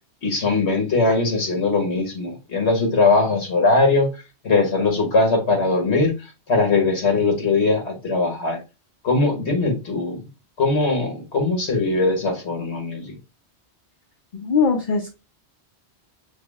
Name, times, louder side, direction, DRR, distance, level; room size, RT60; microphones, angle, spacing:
voice 1, 0.2-4.1 4.4-6.1 6.5-8.6 9.0-10.2 10.6-13.1, left 3 dB, 75° left, 1.6 m, -20 dB
voice 2, 14.3-15.1, left 5 dB, 55° left, 0.7 m, -21 dB
5.9 x 2.0 x 3.4 m
omnidirectional pair, 1.1 m